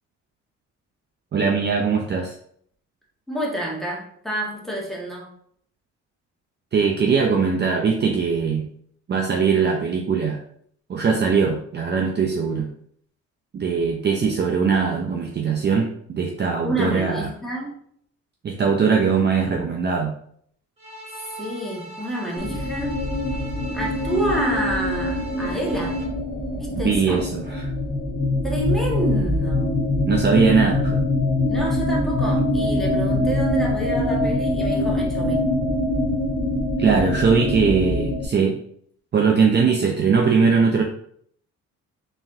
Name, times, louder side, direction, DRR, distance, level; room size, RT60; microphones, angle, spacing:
voice 1, 1.3-2.3 6.7-8.7 9.1-10.4 10.9-12.7 13.5-17.3 18.4-20.1 26.8-27.7 30.1-31.0 36.8-38.6 39.1-40.8, right 5 dB, 35° right, 2 dB, 0.5 m, -20 dB
voice 2, 3.3-5.3 16.6-17.7 21.4-23.0 23.7-26.0 26.6-27.2 28.4-29.7 31.5-35.5, right 1 dB, ahead, -4 dB, 1.4 m, -28 dB
sound 1, 20.8-26.0, right 1 dB, 20° right, 1.5 m, -39 dB
sound 2, 22.4-38.3, left 1 dB, 30° left, 0.9 m, -23 dB
4.1 x 3.4 x 2.6 m, 0.64 s
cardioid pair, 90°, 30 cm